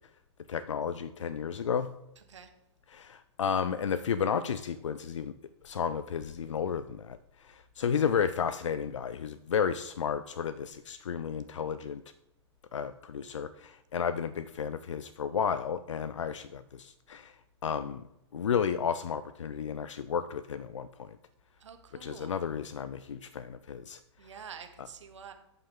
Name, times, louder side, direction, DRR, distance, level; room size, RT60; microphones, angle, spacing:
voice 1, 0.5-1.9 2.9-5.3 5.6-12.0 12.7-17.3 17.6-18.0 18.3-21.1 22.0-24.0 24.8-24.9, left 7 dB, 80° left, 14 dB, 0.4 m, -32 dB
voice 2, 21.6-22.3 24.2-25.3, right 6 dB, 75° right, 7 dB, 1.0 m, -47 dB
11.0 x 5.6 x 3.7 m, 0.85 s
figure-of-eight pair, 105°, 16 cm